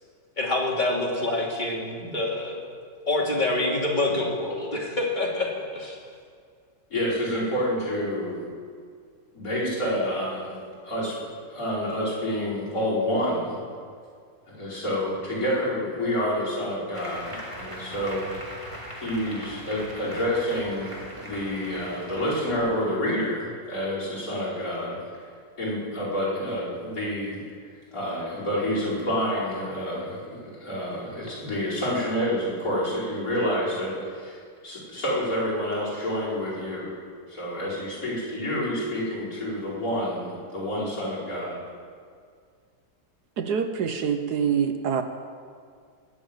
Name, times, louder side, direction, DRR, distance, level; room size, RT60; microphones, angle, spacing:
voice 1, 0.4-2.6 3.1-6.0, left 2 dB, 25° left, -3 dB, 2.9 m, -26 dB
voice 2, 6.9-8.5 9.3-10.5 10.8-11.1 11.5-13.6 14.5-18.2 19.0-25.0 25.6-27.4 27.9-33.9 34.2-34.3 34.6-37.0 37.3-41.6, equal, 50° left, -8 dB, 5.7 m, -28 dB
Applause, 16.9-22.6, equal, 15° right, 2.7 m, -40 dB
voice 3, 43.4-45.0, right 7 dB, 70° right, 8 dB, 1.3 m, -25 dB
21.0 x 7.3 x 9.0 m, 2.1 s
omnidirectional pair, 1.9 m